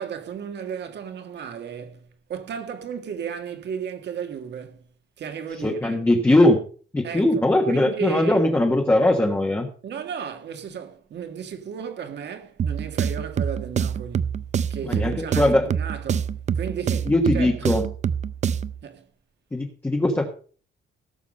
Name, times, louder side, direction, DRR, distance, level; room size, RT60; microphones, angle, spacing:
voice 1, 0.0-4.9 5.2-6.0 7.0-8.5 9.8-14.4 14.7-17.7 18.8-19.1, right 7 dB, 60° right, 1.9 m, -34 dB
voice 2, 5.6-6.6 6.9-9.7 14.9-15.7 17.1-17.8 19.5-20.3, left 1 dB, 10° left, 1.3 m, -20 dB
sound 1, 12.6-18.8, right 8 dB, 35° right, 0.4 m, -26 dB
17.0 x 7.1 x 5.3 m
cardioid pair, 175°, 21 cm